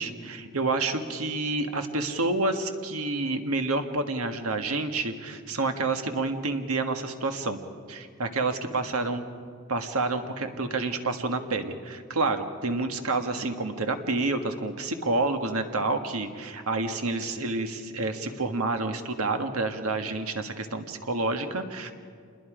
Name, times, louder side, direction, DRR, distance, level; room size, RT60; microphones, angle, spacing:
voice 1, 0.0-7.6 7.9-9.2 9.7-21.9, right 3 dB, 85° right, 6 dB, 1.6 m, -29 dB
27.0 x 21.0 x 5.0 m, 2.1 s
head